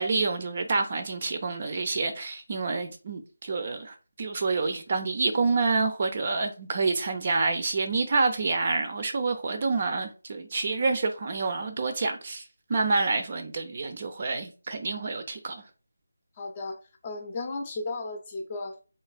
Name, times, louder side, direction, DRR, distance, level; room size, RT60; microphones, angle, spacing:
voice 1, 0.0-12.4 12.7-15.6, right 3 dB, 40° right, 0.5 m, -28 dB
voice 2, 16.4-18.8, left 3 dB, 25° left, 0.6 m, -35 dB
3.3 x 2.9 x 2.4 m
figure-of-eight pair, 165°, 0 cm